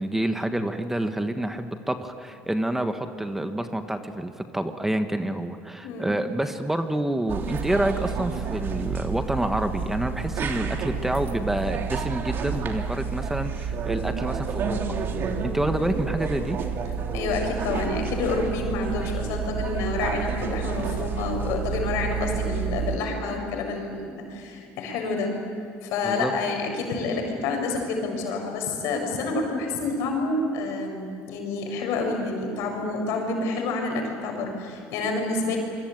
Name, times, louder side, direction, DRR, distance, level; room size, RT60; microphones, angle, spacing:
voice 1, 0.0-15.0 15.4-16.6 26.0-26.3, right 1 dB, 5° right, 7 dB, 1.5 m, -28 dB
sound 1, 7.3-23.0, right 6 dB, 50° right, 3.0 m, -30 dB
voice 2, 17.1-25.3 25.8-35.6, left 3 dB, 75° left, 3 dB, 7.0 m, -28 dB
27.0 x 23.5 x 9.2 m, 2.4 s
cardioid pair, 115°, 5 cm